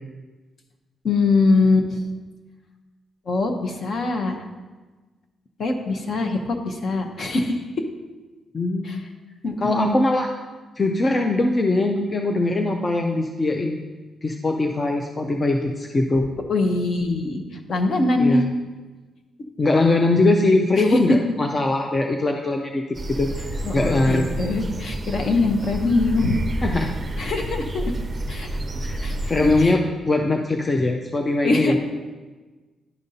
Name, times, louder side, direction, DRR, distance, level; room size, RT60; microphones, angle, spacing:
voice 1, 1.0-2.0 3.3-4.4 5.6-7.6 8.8-9.0 9.4-10.0 16.5-17.4 17.7-18.4 20.8-21.0 23.6-26.4 26.7-26.9 27.2-27.8 28.3-28.6 29.0-29.8 31.4-31.8, left 3 dB, 50° left, 4 dB, 0.7 m, -22 dB
voice 2, 8.5-9.0 9.6-10.3 10.8-13.8 14.2-16.3 18.2-18.4 19.6-22.8 23.2-24.3 26.6-26.9 28.8-29.0 29.3-29.8 30.1-31.8, left 2 dB, 25° left, 3 dB, 0.4 m, -21 dB
sound 1, 22.9-29.6, right 1 dB, 25° right, 0.5 m, -29 dB
10.5 x 5.2 x 2.7 m, 1.3 s
wide cardioid pair, 155°, 0 cm